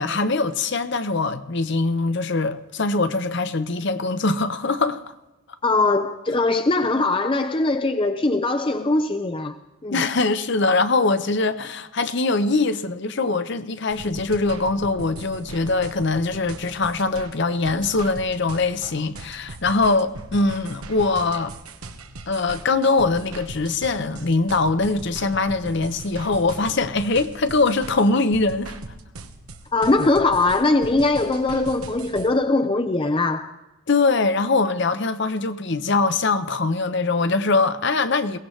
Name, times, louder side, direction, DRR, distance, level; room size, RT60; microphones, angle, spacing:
voice 1, 0.0-5.0 9.9-21.5 22.3-28.8 33.9-38.4, left 3 dB, 55° left, 0.8 m, -22 dB
voice 2, 5.6-9.5 9.8-10.0 29.7-33.5, left 2 dB, 25° left, 0.5 m, -21 dB
sound 1, 13.9-32.3, right 2 dB, 85° right, 1.2 m, -39 dB
22.0 x 18.0 x 3.2 m
head